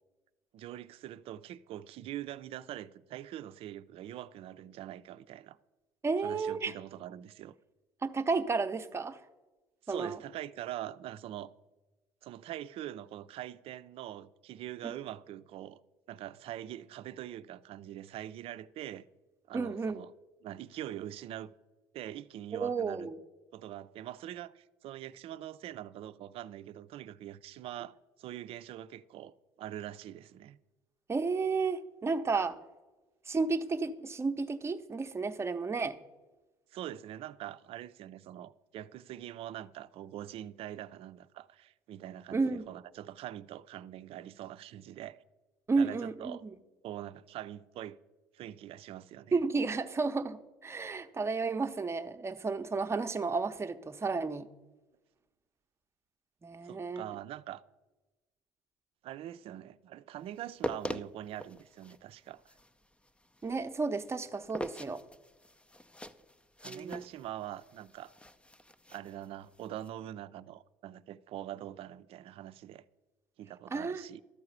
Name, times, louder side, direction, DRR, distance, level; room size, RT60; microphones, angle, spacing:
voice 1, 0.5-5.6 6.2-7.6 9.8-11.5 12.2-15.8 16.1-19.1 19.5-20.1 20.4-21.5 21.9-23.1 23.5-30.6 36.7-45.2 45.7-46.4 46.8-48.0 48.3-49.4 56.6-57.6 59.0-62.5 66.6-68.1 68.9-72.8 73.4-74.2, right 12 dB, 60° right, 0.5 m, -43 dB
voice 2, 6.0-6.7 8.0-9.2 9.9-10.2 14.8-15.0 19.5-20.0 22.5-23.2 31.1-32.5 33.3-36.0 42.3-42.6 45.7-46.5 49.3-54.5 56.4-57.0 63.4-65.0 66.7-67.0 73.7-74.0, right 4 dB, 25° right, 0.8 m, -32 dB
sound 1, 60.3-69.9, left 1 dB, 10° left, 0.6 m, -44 dB
12.5 x 4.8 x 8.0 m
hypercardioid pair, 75°, 11 cm